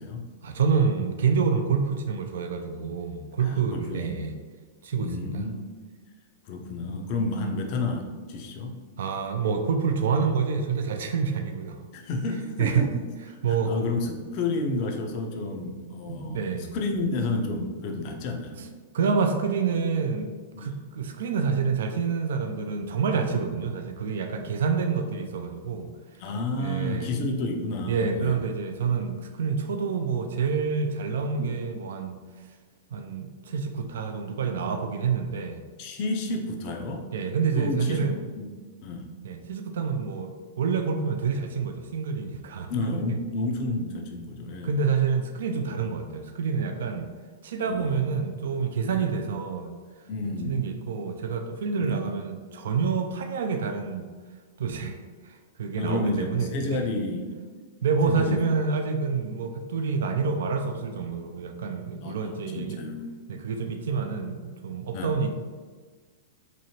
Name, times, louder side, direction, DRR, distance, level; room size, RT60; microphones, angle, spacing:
voice 1, 0.4-4.3 4.8-5.4 9.0-11.8 12.6-12.9 13.4-13.7 16.1-16.7 18.9-20.3 20.6-25.9 26.6-27.1 27.9-32.2 32.9-35.6 37.1-38.1 39.2-43.0 44.6-47.1 47.4-49.7 50.5-54.1 54.6-55.0 55.2-56.8 57.8-62.8 63.3-65.3, right 5 dB, 70° right, 5 dB, 0.3 m, -27 dB
voice 2, 3.4-4.2 5.0-5.6 6.5-8.7 11.9-13.0 13.5-16.4 16.7-18.6 20.5-20.7 26.2-28.4 28.9-29.0 31.4-31.5 35.8-37.1 37.6-38.1 38.4-38.5 38.8-39.1 42.7-44.7 47.7-48.0 48.9-49.1 50.1-50.6 51.8-52.0 55.7-57.3 58.1-58.4 59.2-59.3 62.0-63.1 64.9-65.1, left 2 dB, 50° left, 3 dB, 0.5 m, -31 dB
3.0 x 2.7 x 2.8 m, 1.5 s
hypercardioid pair, 105°, 0 cm